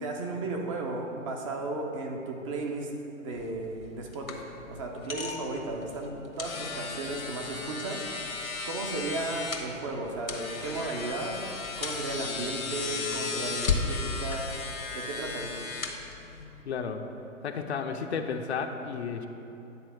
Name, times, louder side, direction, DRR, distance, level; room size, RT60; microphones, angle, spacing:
voice 1, 0.0-2.9 3.2-8.1 8.6-11.4 11.8-14.5 14.9-15.6, right 2 dB, 25° right, 1 dB, 0.7 m, -35 dB
sound 1, 3.3-16.6, left 4 dB, 80° left, 1.2 m, -35 dB
voice 2, 16.6-17.0 17.4-19.3, left 6 dB, 55° left, 5 dB, 0.7 m, -32 dB
9.7 x 4.0 x 6.3 m, 2.9 s
figure-of-eight pair, 130°, 41 cm